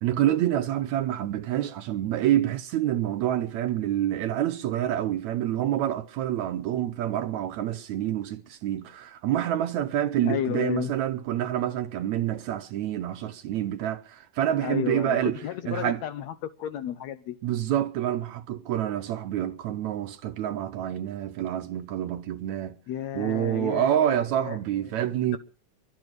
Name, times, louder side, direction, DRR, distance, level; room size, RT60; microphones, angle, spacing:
voice 1, 0.0-15.4 15.7-16.0 17.4-22.7 23.1-25.4, right 11 dB, 70° right, 1.9 m, -27 dB
voice 2, 10.2-10.9 14.6-16.3 16.6-17.4 22.9-24.6, left 11 dB, 70° left, 1.8 m, -32 dB
23.0 x 8.1 x 6.4 m
omnidirectional pair, 3.9 m